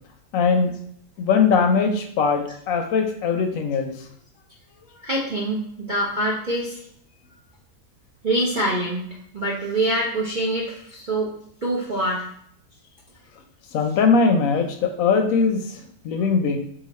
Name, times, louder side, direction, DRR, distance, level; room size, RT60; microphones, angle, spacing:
voice 1, 0.3-0.7 1.2-3.9 13.7-16.6, left 5 dB, 70° left, 5 dB, 0.9 m, -20 dB
voice 2, 5.0-6.8 8.2-9.1 9.3-11.3 11.6-12.2, right 1 dB, 55° right, -6 dB, 0.5 m, -25 dB
3.9 x 2.5 x 4.1 m, 0.66 s
omnidirectional pair, 1.7 m